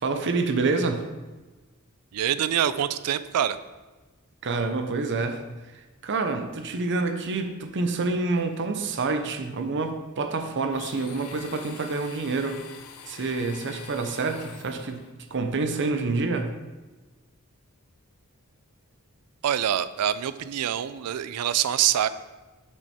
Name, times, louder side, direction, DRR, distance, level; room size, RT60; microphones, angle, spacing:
voice 1, 0.0-1.1 4.4-5.4 5.7-12.6 13.0-15.0 15.3-16.5, right 3 dB, 55° right, 7 dB, 0.7 m, -27 dB
voice 2, 2.1-3.6 19.4-22.1, right 10 dB, 85° right, 14 dB, 0.4 m, -25 dB
Domestic sounds home sounds, 10.7-15.1, left 7 dB, 90° left, 0.6 m, -45 dB
6.7 x 6.3 x 4.3 m, 1.2 s
head